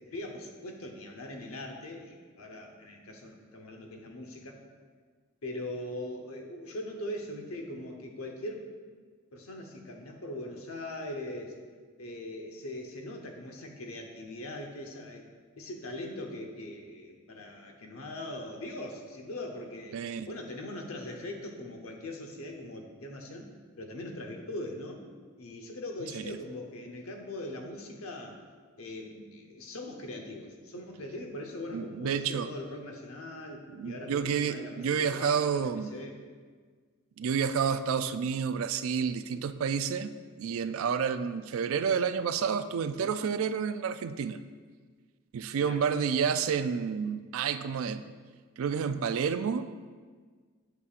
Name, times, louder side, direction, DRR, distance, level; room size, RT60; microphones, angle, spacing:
voice 1, 0.1-4.6 5.4-8.7 9.3-11.6 12.0-15.3 15.6-23.5 23.8-25.0 25.4-28.4 28.8-36.2 45.6-45.8, left 1 dB, 90° left, 2 dB, 0.9 m, -41 dB
voice 2, 19.9-20.3 26.1-26.3 31.7-32.5 33.7-35.9 37.2-40.1 40.4-44.4 45.3-48.0 48.6-49.7, right 6 dB, 75° right, 11 dB, 0.3 m, -30 dB
8.1 x 6.8 x 2.5 m, 1.5 s
head